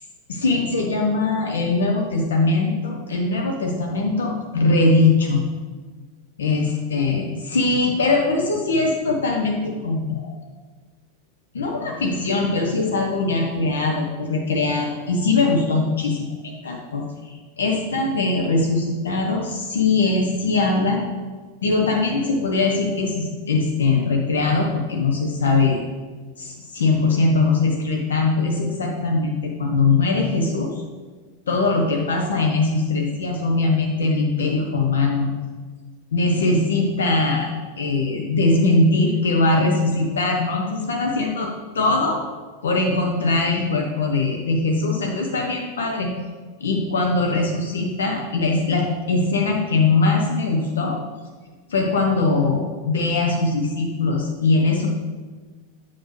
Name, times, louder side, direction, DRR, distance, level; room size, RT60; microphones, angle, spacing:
voice 1, 0.3-5.4 6.4-10.4 11.5-21.0 21.6-25.8 26.4-30.8 31.5-35.3 36.1-37.5 37.8-42.2 42.6-46.1 46.6-51.0 51.7-54.9, left 3 dB, 65° left, 1 dB, 0.8 m, -21 dB
8.0 x 5.7 x 3.2 m, 1.4 s
figure-of-eight pair, 90°, 0 cm